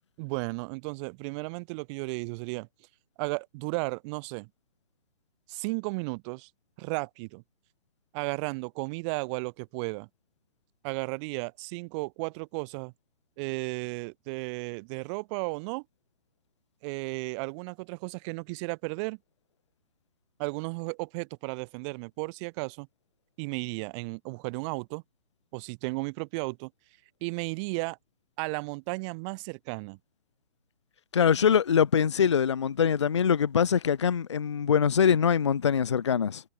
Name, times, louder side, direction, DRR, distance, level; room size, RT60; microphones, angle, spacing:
voice 1, 0.2-2.7 3.2-4.5 5.5-6.5 6.8-7.4 8.1-10.1 10.8-12.9 13.4-15.8 16.8-19.2 20.4-22.9 23.4-25.0 25.5-26.7 27.2-28.0 28.4-30.0, right 29 dB, 25° right, 1.9 m, -34 dB
voice 2, 31.1-36.4, left 7 dB, 25° left, 0.3 m, -23 dB
hypercardioid pair, 150°, 35 cm